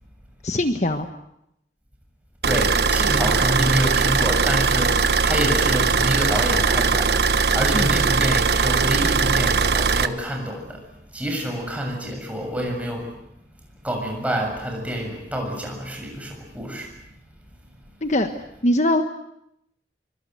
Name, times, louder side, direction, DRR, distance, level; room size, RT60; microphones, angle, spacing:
voice 1, 0.4-1.1 7.7-7.9 18.0-18.3 18.6-19.0, left 1 dB, 40° left, 7 dB, 1.4 m, -21 dB
voice 2, 2.4-10.9 11.1-13.1 13.8-17.0, equal, 10° right, 1 dB, 7.1 m, -27 dB
sound 1, 2.4-10.1, right 4 dB, 65° right, 1.2 m, -20 dB
27.0 x 24.5 x 8.1 m, 0.79 s
head